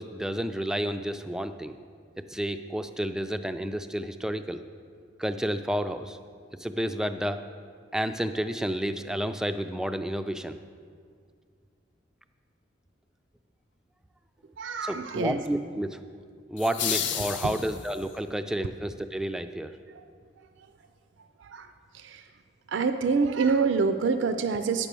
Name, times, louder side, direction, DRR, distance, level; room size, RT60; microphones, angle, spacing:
voice 1, 0.0-1.7 2.3-4.6 5.2-6.2 6.6-7.4 7.9-10.6 14.8-16.0 16.5-19.7, equal, 5° right, 9 dB, 0.3 m, -30 dB
voice 2, 14.6-15.4 19.9-20.0 21.4-22.2 22.7-24.9, right 5 dB, 75° right, 9 dB, 0.4 m, -27 dB
sound 1, 16.6-18.1, left 8 dB, 70° left, 0.7 m, -31 dB
9.5 x 6.1 x 6.8 m, 2.1 s
head